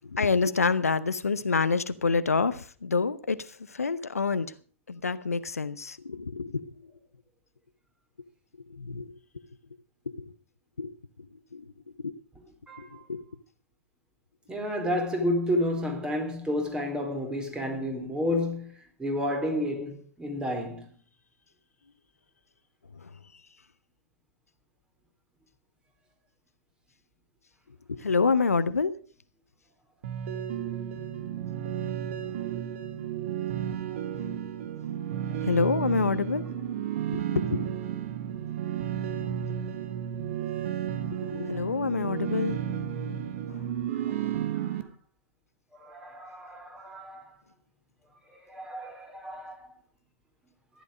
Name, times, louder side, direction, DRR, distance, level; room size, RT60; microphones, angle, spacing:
voice 1, 0.0-4.5 4.9-6.9 8.7-9.1 10.2-10.3 10.8-10.9 11.5-11.6 12.0-12.1 12.8-13.2 22.9-23.1 27.9-28.9 35.4-36.4 37.1-37.7 41.1-42.6 43.5-43.6, left 4 dB, 85° left, 0.9 m, -27 dB
voice 2, 12.7-13.1 14.5-18.7 19.0-20.9 44.1-44.3 45.7-47.2 48.3-49.6, left 1 dB, 10° right, 3.8 m, -31 dB
sound 1, 30.0-44.8, right 9 dB, 55° right, 1.8 m, -32 dB
14.5 x 11.5 x 5.0 m
figure-of-eight pair, 110°, 8 cm